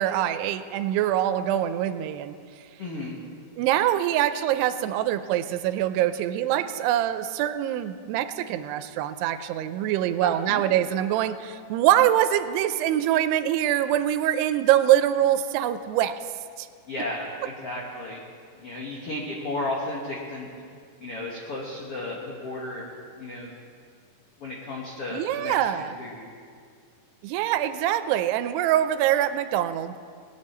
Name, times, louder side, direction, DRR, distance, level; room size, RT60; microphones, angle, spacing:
voice 1, 0.0-2.4 3.6-16.2 16.6-16.7 25.1-25.9 27.2-29.9, right 12 dB, 85° right, 11 dB, 2.6 m, -24 dB
voice 2, 2.8-3.2 10.2-10.6 16.9-18.2 18.6-20.5 21.0-23.5 24.4-26.3, left 2 dB, 80° left, -3 dB, 1.3 m, -34 dB
20.0 x 9.5 x 4.3 m, 2.2 s
omnidirectional pair, 4.7 m